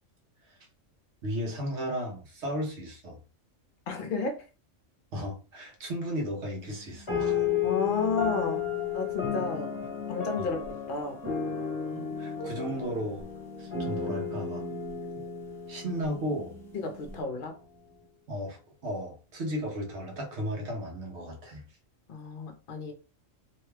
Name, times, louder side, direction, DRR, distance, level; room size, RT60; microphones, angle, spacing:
voice 1, 1.2-3.2 5.1-7.4 12.2-13.3 13.6-14.6 15.2-15.3 15.7-16.6 18.3-21.6, equal, 65° right, 1.1 m, -35 dB
voice 2, 3.9-4.4 7.6-8.6 8.9-9.7 10.1-11.2 15.9-16.0 16.7-17.6 22.1-22.9, left 4 dB, 50° left, 0.8 m, -32 dB
sound 1, 6.6-10.7 11.9-15.6 15.9-17.2, left 2 dB, ahead, 0.7 m, -50 dB
sound 2, 7.1-16.8, left 7 dB, 25° left, 1.1 m, -32 dB
2.9 x 2.2 x 3.2 m
omnidirectional pair, 1.3 m